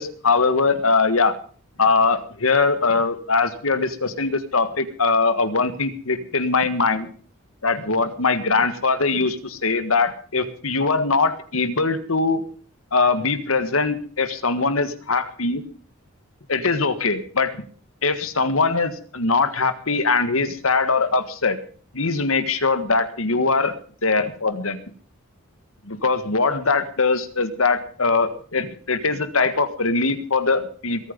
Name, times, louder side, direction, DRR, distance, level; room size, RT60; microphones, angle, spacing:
voice 1, 0.0-1.3 1.8-7.1 7.6-12.4 12.9-15.6 16.5-17.6 18.0-21.6 21.9-23.7 24.0-24.8 25.9-31.1, left 4 dB, 80° left, 11 dB, 1.7 m, -21 dB
21.5 x 9.3 x 5.3 m, 0.44 s
head